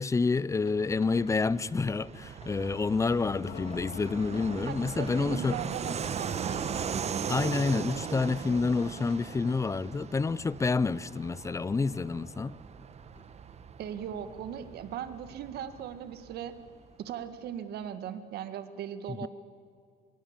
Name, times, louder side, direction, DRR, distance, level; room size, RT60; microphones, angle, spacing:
voice 1, 0.0-5.6 7.3-12.5 19.1-19.3, left 4 dB, 20° left, 0.5 m, -28 dB
sound 1, 0.6-1.7 2.0-2.6 3.0-10.1 10.6-12.5 13.1-13.3 13.9-14.0 14.9-15.0 15.3-15.4, left 4 dB, 35° left, 2.8 m, -55 dB
Fixed-wing aircraft airplane, 0.7-16.9, right 7 dB, 40° right, 1.2 m, -39 dB
sound 2, 3.5-7.5, left 7 dB, 55° left, 2.2 m, -47 dB
voice 2, 4.7-6.7 13.8-16.6 17.0-19.3, right 9 dB, 70° right, 1.8 m, -38 dB
24.5 x 22.5 x 7.4 m
cardioid pair, 110°, 17 cm